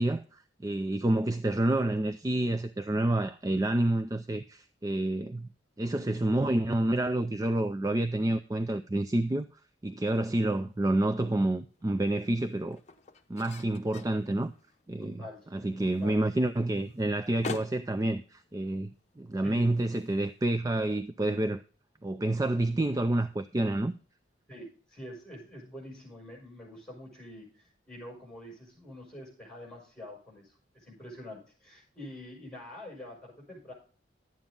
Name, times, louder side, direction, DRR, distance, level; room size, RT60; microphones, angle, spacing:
voice 1, 0.0-5.5 5.8-9.5 9.8-12.8 13.3-14.5 14.9-15.2 15.5-21.6 22.0-23.9, right 1 dB, 20° right, 0.4 m, -28 dB
sound 1, 10.5-20.9, left 3 dB, 35° left, 0.9 m, -48 dB
voice 2, 15.0-15.5 15.8-16.2 19.4-19.7 24.5-33.7, left 1 dB, 5° left, 6.4 m, -46 dB
11.5 x 9.0 x 3.8 m
head